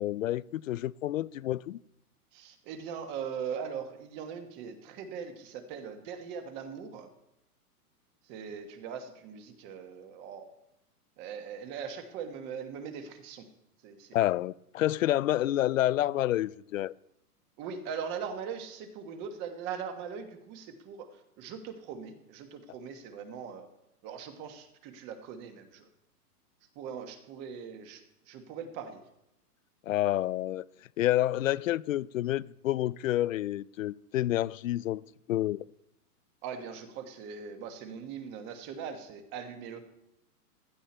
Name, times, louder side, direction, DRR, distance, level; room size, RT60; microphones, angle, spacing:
voice 1, 0.0-1.8 14.1-16.9 29.9-30.7 31.0-35.0 35.3-35.6, left 14 dB, 60° left, 0.5 m, -29 dB
voice 2, 2.3-7.1 8.2-10.5 11.2-13.5 13.8-14.2 17.6-23.7 24.0-25.9 26.7-29.0 36.4-39.8, right 7 dB, 25° right, 1.4 m, -40 dB
16.0 x 12.5 x 4.4 m
hypercardioid pair, 160°, 47 cm